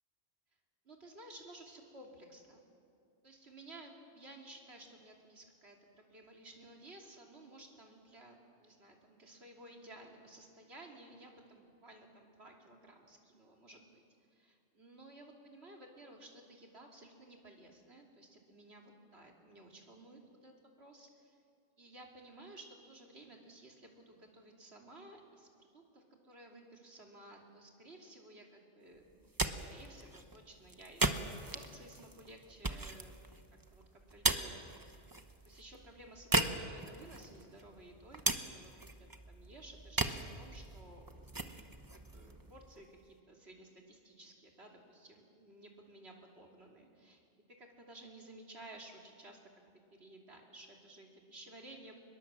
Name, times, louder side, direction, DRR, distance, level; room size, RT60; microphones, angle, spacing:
voice 1, 0.8-2.6 3.2-14.0 14.3-21.4 21.8-31.1 31.4-33.2 33.7-34.6 35.4-38.7 39.0-41.3 41.9-47.2 47.6-49.4 49.9-51.9, right 1 dB, 65° right, 1 dB, 3.2 m, -55 dB
sound 1, 29.1-43.1, right 2 dB, 20° right, 0.9 m, -39 dB
25.5 x 21.5 x 7.6 m, 2.5 s
omnidirectional pair, 1.2 m